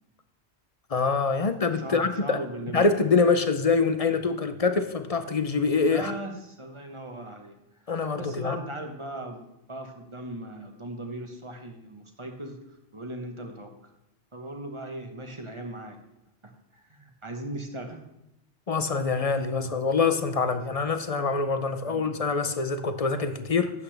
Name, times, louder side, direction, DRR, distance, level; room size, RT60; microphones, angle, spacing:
voice 1, 0.9-2.4 2.7-6.1 7.9-8.6 18.7-23.7, left 4 dB, 40° left, 10 dB, 0.6 m, -25 dB
voice 2, 1.8-3.1 5.8-7.5 8.2-12.6 12.9-13.7 14.3-16.0 16.9-18.0 21.8-22.2, right 1 dB, 25° right, 4 dB, 1.2 m, -38 dB
12.0 x 8.3 x 3.3 m, 0.86 s
omnidirectional pair, 1.2 m